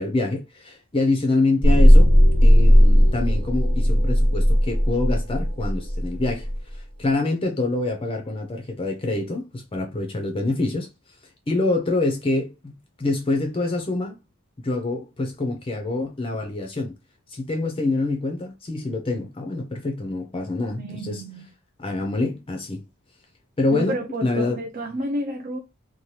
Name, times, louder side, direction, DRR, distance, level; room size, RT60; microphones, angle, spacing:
voice 1, 0.0-2.1 2.4-6.5 6.7-10.9 11.5-14.2 14.6-16.9 17.3-21.2 21.8-22.8 23.6-24.6, left 2 dB, 25° left, 0.5 m, -26 dB
sound 1, 1.6-6.6, equal, 70° right, 1.1 m, -16 dB
voice 2, 20.7-21.5 23.7-25.6, right 1 dB, 40° right, 0.4 m, -30 dB
2.8 x 2.2 x 3.1 m
head